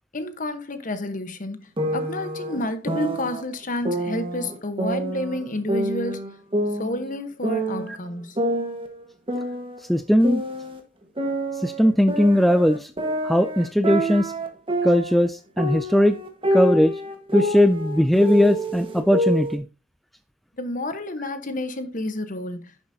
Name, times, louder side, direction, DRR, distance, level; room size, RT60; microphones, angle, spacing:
voice 1, 0.1-1.6 1.9-6.2 6.8-8.3 20.6-22.6, left 1 dB, 45° left, 1.1 m, -30 dB
sound 1, 1.8-3.4 3.9-5.4 5.7-7.9 8.4-10.8 11.2-15.3 15.6-19.6, right 1 dB, 30° right, 1.4 m, -27 dB
voice 2, 9.9-10.4 11.6-12.9 13.2-14.3 14.8-16.2 16.5-16.9 17.3-19.6, equal, ahead, 0.3 m, -19 dB
10.5 x 7.0 x 2.7 m
head